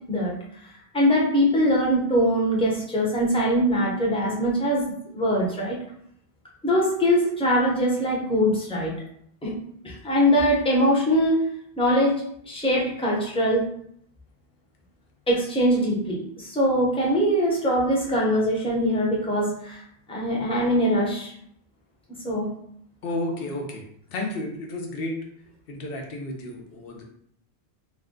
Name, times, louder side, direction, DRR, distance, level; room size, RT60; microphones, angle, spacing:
voice 1, 0.9-4.9 5.1-5.8 6.6-8.9 9.4-9.6 9.8-11.4 11.8-13.6 15.3-19.8 20.1-21.3 22.2-22.5, equal, 5° left, -4 dB, 0.7 m, -22 dB
voice 2, 23.0-23.8 24.1-25.2 25.7-27.0, left 1 dB, 65° left, 1 dB, 0.9 m, -32 dB
2.5 x 2.2 x 3.6 m, 0.68 s
omnidirectional pair, 1.0 m